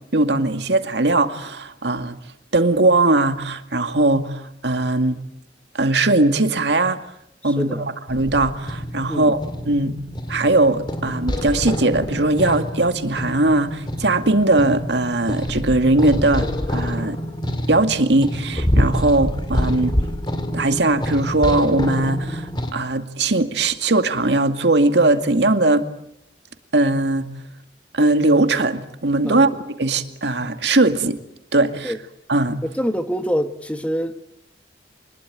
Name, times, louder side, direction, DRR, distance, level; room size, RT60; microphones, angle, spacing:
voice 1, 0.1-2.2 2.5-5.2 5.7-7.0 7.4-7.8 8.1-9.4 9.7-10.0 10.3-17.2 17.7-20.0 20.5-25.9 26.7-27.3 27.9-29.5 29.8-31.2 31.5-31.9 32.3-32.6, right 2 dB, 80° right, 2.2 m, -19 dB
voice 2, 7.4-7.9 9.1-9.3 29.3-29.5 31.8-32.0 32.6-34.2, equal, 10° left, 1.4 m, -25 dB
sound 1, 8.1-22.7, equal, 25° left, 2.0 m, -26 dB
26.0 x 21.0 x 9.2 m
head